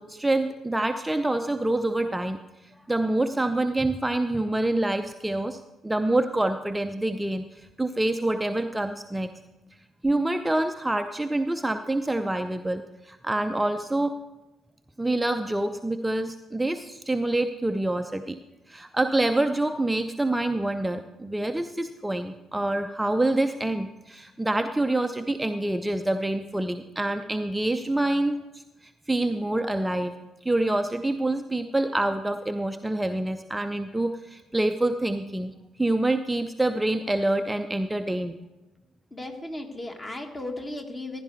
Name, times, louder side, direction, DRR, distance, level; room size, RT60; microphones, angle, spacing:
voice 1, 0.0-9.3 10.0-14.1 15.0-18.4 18.7-30.1 30.4-35.5 35.8-38.4, right 1 dB, 10° right, 7 dB, 0.6 m, -26 dB
voice 2, 39.1-41.2, left 2 dB, 25° left, 3 dB, 1.9 m, -36 dB
15.0 x 10.5 x 3.4 m, 1.1 s
figure-of-eight pair, 45°, 0 cm